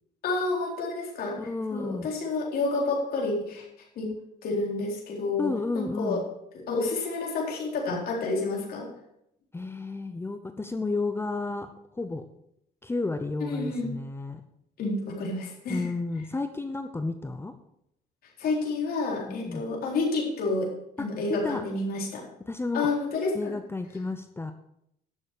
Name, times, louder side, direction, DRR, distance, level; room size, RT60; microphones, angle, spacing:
voice 1, 0.2-1.4 1.7-3.7 4.0-4.1 4.4-5.5 5.7-6.2 6.7-8.9 13.5-13.9 14.8-15.8 18.4-20.7 21.0-22.2 22.7-23.5, left 3 dB, 65° left, -1 dB, 4.0 m, -29 dB
voice 2, 1.4-2.1 5.4-6.2 9.5-12.2 12.8-14.4 15.7-17.5 19.3-19.6 21.0-21.6 22.5-22.9 23.3-24.5, left 3 dB, 15° left, 9 dB, 0.7 m, -32 dB
11.5 x 7.2 x 6.7 m, 0.77 s
cardioid pair, 110°, 17 cm